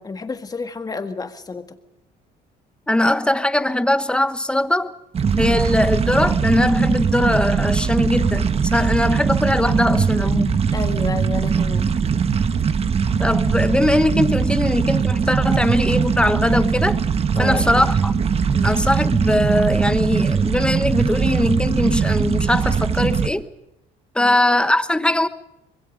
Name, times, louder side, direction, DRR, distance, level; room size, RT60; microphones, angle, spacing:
voice 1, 0.0-1.8 5.5-5.6 10.7-11.9 17.4-17.9 18.5-18.8 24.2-24.4, left 3 dB, 20° left, 1.8 m, -30 dB
voice 2, 2.9-4.9 5.4-10.6 13.2-17.0 17.4-18.1 18.6-23.5 24.1-25.3, left 1 dB, 5° left, 1.1 m, -20 dB
sound 1, 5.1-23.3, right 6 dB, 35° right, 1.2 m, -20 dB
25.5 x 21.5 x 5.1 m
cardioid pair, 110°, 17 cm